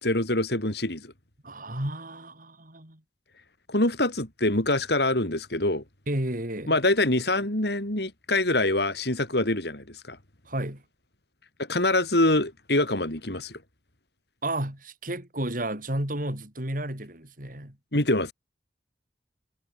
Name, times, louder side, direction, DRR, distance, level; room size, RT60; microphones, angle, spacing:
voice 1, 0.0-1.1 3.7-5.8 6.7-10.2 11.7-13.6 17.9-18.3, left 2 dB, 65° left, 5.3 m, -25 dB
voice 2, 1.4-3.0 6.1-6.8 10.5-10.8 14.4-17.8, right 1 dB, 50° right, 5.7 m, -32 dB
head